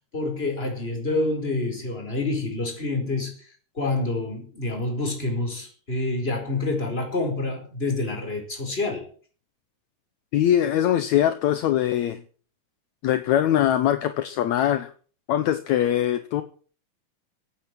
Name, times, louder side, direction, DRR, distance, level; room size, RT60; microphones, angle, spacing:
voice 1, 0.1-3.5 3.7-9.1, left 2 dB, 15° left, 4.7 m, -27 dB
voice 2, 10.3-12.2 13.0-14.9 15.3-16.4, left 11 dB, 70° left, 2.1 m, -22 dB
16.0 x 9.1 x 7.6 m
omnidirectional pair, 3.8 m